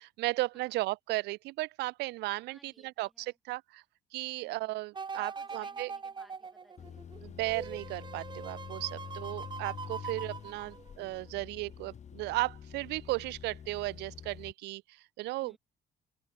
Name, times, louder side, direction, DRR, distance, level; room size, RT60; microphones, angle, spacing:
voice 1, 0.0-3.8 4.1-5.9 7.2-15.6, right 20 dB, 85° right, 0.7 m, -35 dB
voice 2, 2.5-3.3 4.4-4.8 5.1-7.2 10.4-10.9 15.4-15.6, equal, ahead, 3.9 m, -61 dB
sound 1, 4.9-11.2 11.7-11.8, right 5 dB, 25° right, 1.5 m, -42 dB
sound 2, 6.8-14.5, left 8 dB, 45° left, 2.9 m, -47 dB
open air
cardioid pair, 110°, 17 cm